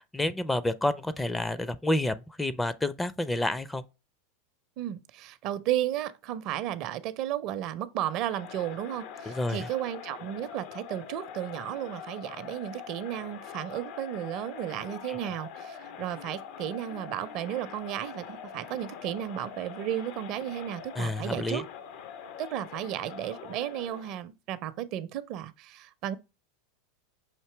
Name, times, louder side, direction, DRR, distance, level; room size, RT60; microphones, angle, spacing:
voice 1, 0.1-3.8 9.3-9.7 15.1-15.2 21.0-21.6, left 1 dB, 10° left, 0.4 m, -29 dB
voice 2, 4.8-21.6 22.4-26.2, right 12 dB, 50° right, 0.5 m, -34 dB
Crowd, 8.1-24.2, left 7 dB, 60° left, 0.5 m, -44 dB
5.8 x 2.7 x 3.2 m
hypercardioid pair, 95°, 0 cm